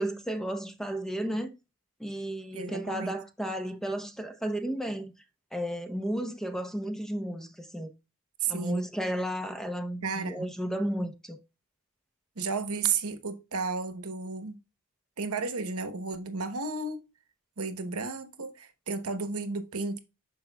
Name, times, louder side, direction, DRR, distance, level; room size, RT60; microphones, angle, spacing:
voice 1, 0.0-1.5 2.0-5.1 5.5-7.9 8.5-11.4, right 1 dB, ahead, 0.8 m, -33 dB
voice 2, 2.5-3.1 8.4-8.8 10.0-10.5 12.4-14.6 15.2-17.0 17.6-20.0, right 4 dB, 75° right, 1.0 m, -33 dB
12.0 x 4.9 x 2.3 m
head